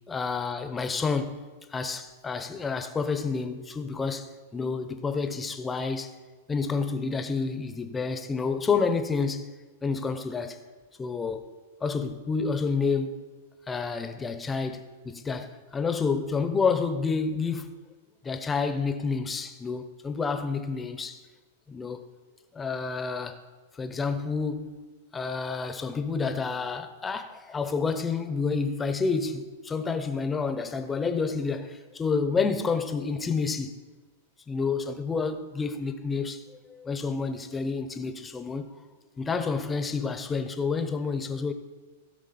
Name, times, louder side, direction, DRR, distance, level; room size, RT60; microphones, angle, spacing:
voice 1, 0.1-1.4 1.7-6.1 6.5-9.5 9.8-10.6 11.0-11.4 11.8-13.2 13.7-17.8 18.2-21.2 21.7-22.1 22.5-23.4 23.7-24.8 25.1-33.8 34.5-36.4 36.7-38.6 39.2-41.5, left 4 dB, 15° left, 0.7 m, -29 dB
15.5 x 6.0 x 4.2 m
hypercardioid pair, 140°, 0 cm